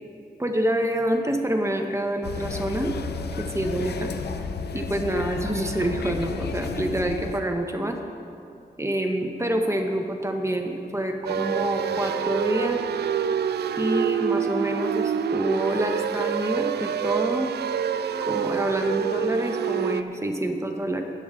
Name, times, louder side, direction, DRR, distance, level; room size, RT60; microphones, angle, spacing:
voice 1, 0.4-2.9 3.4-4.1 4.7-8.0 8.8-12.8 13.8-17.5 18.3-21.0, right 1 dB, 15° right, 3 dB, 1.1 m, -27 dB
sound 1, 2.2-7.4, left 5 dB, 85° left, 0.6 m, -32 dB
sound 2, 11.3-20.0, right 8 dB, 85° right, 0.4 m, -27 dB
19.5 x 8.1 x 3.7 m, 2.5 s
cardioid pair, 75°, 17 cm